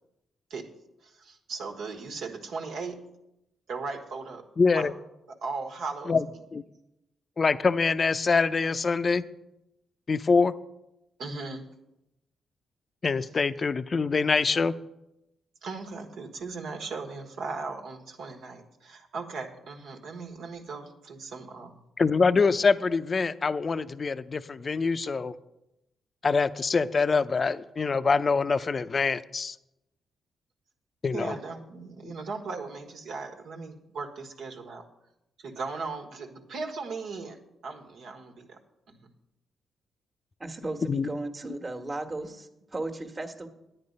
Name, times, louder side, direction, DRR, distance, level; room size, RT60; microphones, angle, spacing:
voice 1, 1.0-3.1 3.7-4.5 4.7-4.9 5.3-6.2 11.2-11.7 15.6-21.8 31.1-34.8 35.4-38.6, right 4 dB, 75° right, 3 dB, 1.5 m, -37 dB
voice 2, 4.6-4.9 6.1-6.2 6.5-6.6 7.4-9.2 10.1-10.5 13.0-14.7 22.0-25.3 26.2-29.6 31.0-31.3 32.0-32.1 40.9-41.1, left 4 dB, 45° left, 13 dB, 0.5 m, -24 dB
voice 3, 40.4-43.5, right 2 dB, 35° right, 5 dB, 1.4 m, -35 dB
9.9 x 9.3 x 5.3 m, 0.89 s
supercardioid pair, 50°, 0 cm